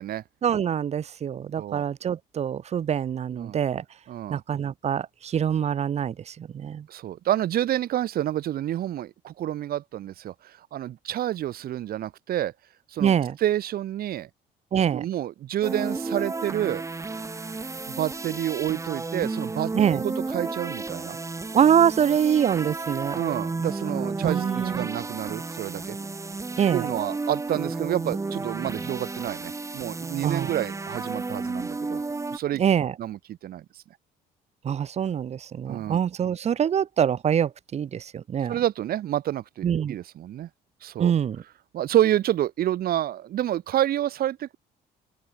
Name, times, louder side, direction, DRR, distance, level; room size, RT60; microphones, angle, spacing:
voice 1, 0.4-3.8 4.3-6.9 13.0-13.4 14.7-15.1 19.7-20.0 21.5-23.2 24.2-24.9 26.6-26.9 30.2-30.5 32.6-32.9 34.6-38.6 39.6-40.0 41.0-41.4, right 8 dB, 40° right, 0.9 m, -24 dB
voice 2, 4.1-4.4 6.9-12.5 12.9-13.1 13.4-14.3 14.9-16.8 18.0-21.2 23.1-26.0 26.7-32.0 32.3-32.6 33.0-33.6 35.7-36.0 38.5-40.5 40.8-41.1 41.7-44.6, right 12 dB, 60° right, 2.8 m, -28 dB
sound 1, 15.6-32.4, right 3 dB, 15° right, 2.1 m, -32 dB
open air
cardioid pair, 110°, 17 cm